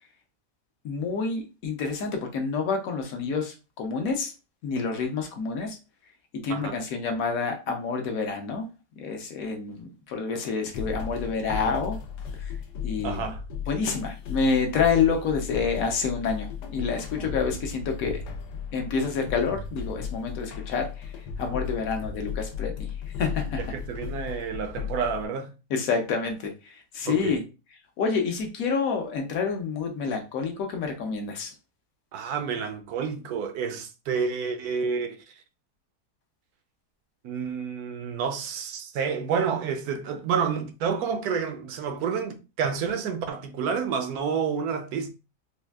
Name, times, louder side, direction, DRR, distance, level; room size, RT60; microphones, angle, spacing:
voice 1, 0.8-4.3 4.6-5.8 6.4-8.7 9.0-12.0 12.4-12.5 12.8-13.3 13.7-18.2 18.7-21.1 21.4-22.9 23.2-23.6 25.7-27.4 28.0-31.5, left 5 dB, 65° left, 1.1 m, -28 dB
sound 1, 10.7-25.3, left 7 dB, 85° left, 1.2 m, -35 dB
voice 2, 13.0-13.4 23.6-25.5 27.0-27.4 32.1-35.3 37.2-45.1, right 6 dB, 75° right, 1.0 m, -29 dB
4.3 x 2.4 x 2.3 m
omnidirectional pair, 1.7 m